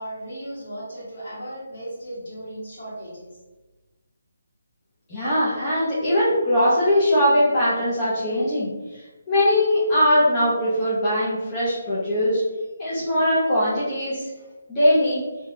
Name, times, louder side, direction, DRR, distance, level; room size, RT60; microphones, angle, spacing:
voice 1, 0.0-3.3, right 1 dB, 40° left, -8 dB, 1.4 m, -36 dB
voice 2, 5.1-9.0 9.3-12.4 12.8-14.3 14.7-15.2, left 1 dB, 10° left, -11 dB, 0.5 m, -21 dB
2.6 x 2.2 x 3.3 m, 1.2 s
hypercardioid pair, 175°, 0 cm